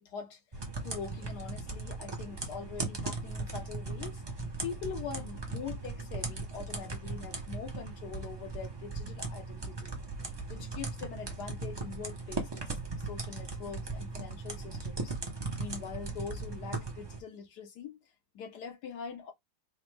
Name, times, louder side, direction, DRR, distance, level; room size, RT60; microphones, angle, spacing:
voice 1, 0.0-4.2 4.6-10.0 10.5-12.7 13.0-15.1 15.6-18.0 18.3-19.3, left 6 dB, 75° left, 1.3 m, -43 dB
sound 1, 0.5-17.2, right 3 dB, 30° right, 0.5 m, -38 dB
5.0 x 2.1 x 3.2 m
omnidirectional pair, 1.8 m